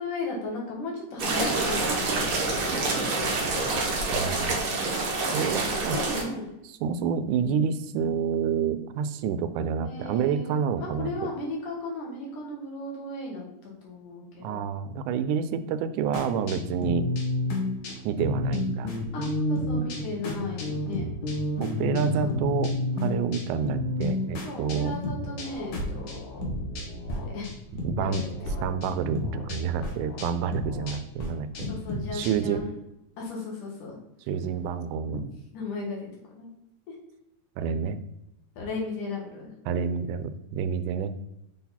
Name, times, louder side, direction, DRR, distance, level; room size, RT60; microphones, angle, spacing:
voice 1, 0.0-2.5 2.9-3.7 5.7-6.5 9.8-14.6 19.1-21.0 22.2-22.4 24.4-26.3 27.1-27.5 28.0-28.1 28.5-28.6 31.5-32.7 33.2-34.0 35.5-36.1 36.4-36.5 36.9-37.0 38.6-39.5, left 2 dB, 90° left, -2 dB, 3.2 m, -36 dB
sound 1, 1.2-6.2, right 3 dB, 55° right, 1.7 m, -27 dB
voice 2, 4.1-4.6 5.3-6.0 6.8-11.1 14.4-17.1 18.0-18.9 21.6-22.7 23.0-25.0 27.8-28.3 28.6-31.7 32.1-32.6 34.3-35.2 37.6-38.0 39.7-41.1, right 7 dB, 90° right, 12 dB, 2.0 m, -28 dB
sound 2, 16.1-27.2 27.4-28.5 28.8-32.6, left 1 dB, 55° left, 1.6 m, -31 dB
sound 3, 24.9-27.3 27.9-30.9, left 3 dB, 70° left, 2.9 m, -41 dB
6.6 x 4.0 x 4.2 m, 0.87 s
omnidirectional pair, 3.5 m